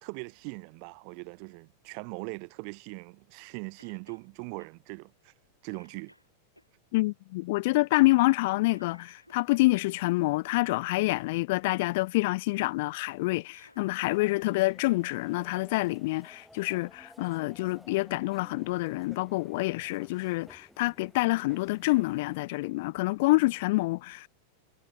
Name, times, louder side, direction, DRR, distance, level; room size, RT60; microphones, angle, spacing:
voice 1, 0.0-5.3 5.6-6.1, right 40 dB or more, 45° right, 0.9 m, -41 dB
Cough, 3.8-4.3 4.6-4.7 5.2-5.4 5.7-6.7 8.7-10.0 13.3-14.6 14.9-15.0 16.1-16.2, equal, 90° left, 4.9 m, -59 dB
voice 2, 6.9-24.3, left 21 dB, 50° left, 0.3 m, -27 dB
sound 1, 14.0-22.4, left 1 dB, ahead, 1.0 m, -55 dB
figure-of-eight pair, 90°, 0 cm